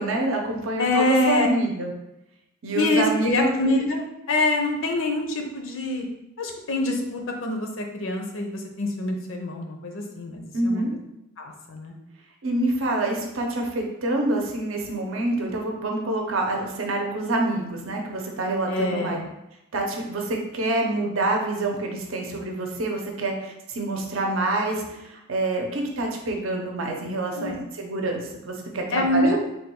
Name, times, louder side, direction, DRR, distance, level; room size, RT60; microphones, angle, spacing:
voice 1, 0.0-1.9 2.6-3.3 10.5-10.9 12.4-19.2 19.7-29.4, right 2 dB, 70° right, 1 dB, 0.6 m, -27 dB
voice 2, 0.8-1.5 2.7-6.0 6.4-10.8 11.4-11.9 18.7-19.3 27.4-27.6 28.9-29.4, left 2 dB, 70° left, 3 dB, 0.6 m, -25 dB
3.4 x 2.3 x 4.3 m, 0.87 s
head